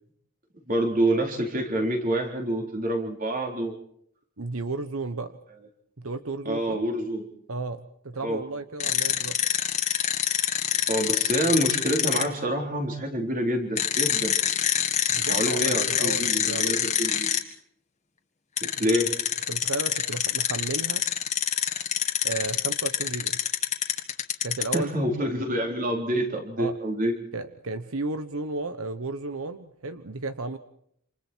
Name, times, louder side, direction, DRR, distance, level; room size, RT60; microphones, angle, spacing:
voice 1, 0.7-3.8 6.4-7.3 8.2-8.4 10.9-14.4 15.3-17.4 18.6-19.2 24.7-27.1, right 1 dB, 40° right, 3 dB, 4.0 m, -27 dB
voice 2, 4.4-5.4 6.0-6.8 7.5-9.4 15.1-16.9 18.8-18.9 19.5-21.1 22.2-23.4 24.4-24.9 25.2-25.3 26.6-26.8 27.3-30.6, right 3 dB, 85° right, 10 dB, 1.2 m, -33 dB
sound 1, 8.8-12.2 13.8-17.4 18.6-24.8, left 9 dB, 35° left, 2.0 m, -25 dB
27.5 x 27.5 x 4.6 m, 0.68 s
head